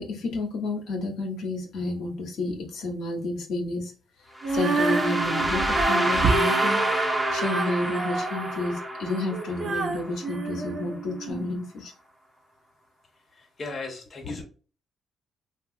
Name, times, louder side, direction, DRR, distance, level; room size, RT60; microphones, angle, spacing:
voice 1, 0.0-3.9 4.5-11.9 14.2-14.4, left 2 dB, 75° left, 2 dB, 0.8 m, -31 dB
sound 1, 4.4-10.4, right 1 dB, 5° right, 0.7 m, -28 dB
Female singing, 4.4-11.5, right 4 dB, 55° right, 0.6 m, -29 dB
voice 2, 13.4-14.4, left 3 dB, 35° left, 2 dB, 0.8 m, -37 dB
2.9 x 2.3 x 2.6 m, 0.37 s
cardioid pair, 90°, 0 cm